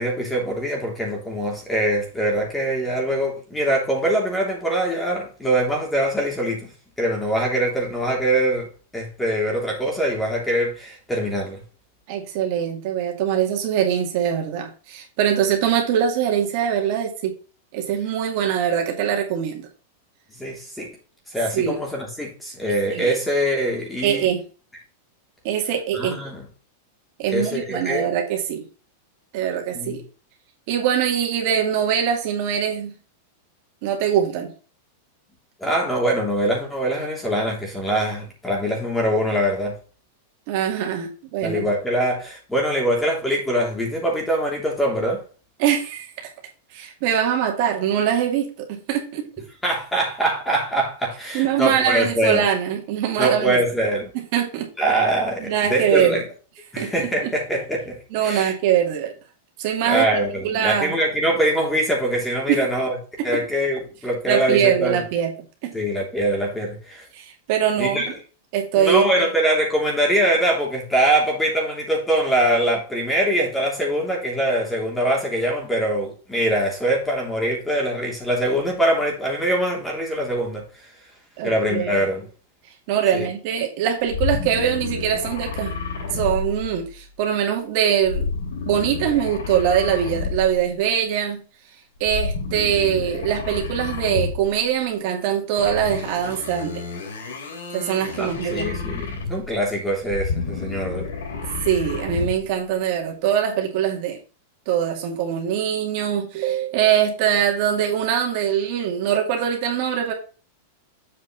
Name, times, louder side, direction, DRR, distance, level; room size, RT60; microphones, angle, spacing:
voice 1, 0.0-6.7 7.0-8.7 8.9-11.6 20.4-20.9 21.3-24.3 25.9-26.4 27.3-28.1 29.7-30.0 35.6-39.7 41.4-45.2 49.6-52.4 53.2-54.1 54.8-56.2 56.7-58.0 58.2-58.5 59.8-63.0 63.2-65.0 65.7-67.0 67.8-68.1 68.7-80.6 81.4-82.3 83.1-83.3 98.2-101.1, right 1 dB, 5° left, 3.0 m, -23 dB
voice 2, 12.1-17.4 17.7-19.7 21.5-21.8 22.9-23.1 24.0-24.4 25.4-26.2 27.2-28.6 29.3-30.0 30.7-32.9 33.8-34.5 40.5-41.7 45.6-46.3 46.7-49.3 51.3-53.6 54.3-54.7 55.4-56.2 56.8-57.3 58.1-59.1 59.6-60.1 60.4-60.9 62.5-62.6 63.2-63.4 64.3-65.3 65.6-65.7 67.1-68.1 68.5-69.1 81.4-82.0 82.9-85.7 86.1-88.3 88.7-91.4 92.0-96.8 97.7-98.7 101.4-104.2 104.7-110.1, right 9 dB, 50° right, 2.3 m, -22 dB
sound 1, 84.0-87.1 88.0-90.7 92.0-94.6 95.6-99.6 100.0-102.5, left 4 dB, 90° left, 3.1 m, -30 dB
7.7 x 5.3 x 4.0 m
supercardioid pair, 150°, 0 cm